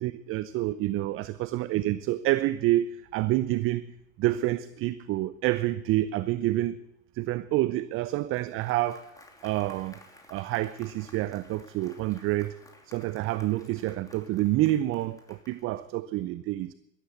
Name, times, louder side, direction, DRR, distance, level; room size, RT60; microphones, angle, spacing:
voice 1, 0.0-6.8 7.1-9.2 9.4-10.0 10.3-12.6 12.8-16.7, right 15 dB, 35° right, 0.6 m, -28 dB
Applause, 8.0-15.9, left 2 dB, 10° left, 2.8 m, -55 dB
13.5 x 12.5 x 8.2 m
hypercardioid pair, 95°, 40 cm